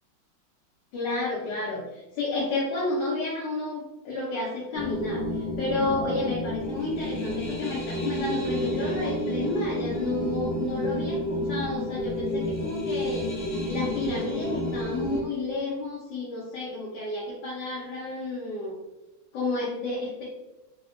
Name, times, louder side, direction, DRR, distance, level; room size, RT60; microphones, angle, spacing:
voice 1, 0.9-13.3 13.7-18.8 19.3-20.2, left 2 dB, 70° left, -6 dB, 1.1 m, -31 dB
sound 1, 4.7-15.2, left 1 dB, 50° left, 0.5 m, -30 dB
3.4 x 2.1 x 2.4 m, 1.0 s
omnidirectional pair, 2.3 m